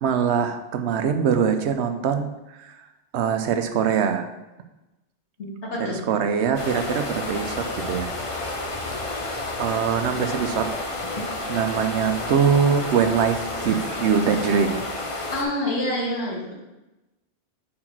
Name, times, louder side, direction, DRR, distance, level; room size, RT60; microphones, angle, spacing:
voice 1, 0.0-2.3 3.1-4.3 5.8-8.1 9.6-10.7 11.5-14.8, right 7 dB, 80° right, 8 dB, 0.9 m, -23 dB
voice 2, 5.4-6.0 15.3-16.5, left 1 dB, 90° left, -5 dB, 2.2 m, -27 dB
sound 1, 6.6-15.4, left 2 dB, 35° left, 0.8 m, -30 dB
4.7 x 4.4 x 6.0 m, 1.0 s
omnidirectional pair, 1.1 m